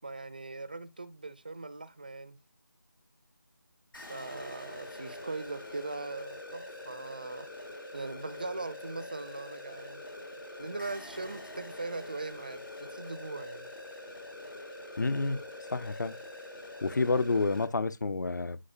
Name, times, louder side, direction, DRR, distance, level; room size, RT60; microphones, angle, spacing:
voice 1, 0.0-2.4 4.1-7.5 7.9-10.0 10.6-13.7, right 3 dB, 25° right, 0.4 m, -40 dB
sound 1, 3.9-17.6, left 2 dB, 90° left, 3.0 m, -44 dB
voice 2, 15.0-15.4 15.7-16.1 16.8-18.6, left 3 dB, 60° left, 0.6 m, -29 dB
10.0 x 4.8 x 2.7 m
figure-of-eight pair, 165°, 11 cm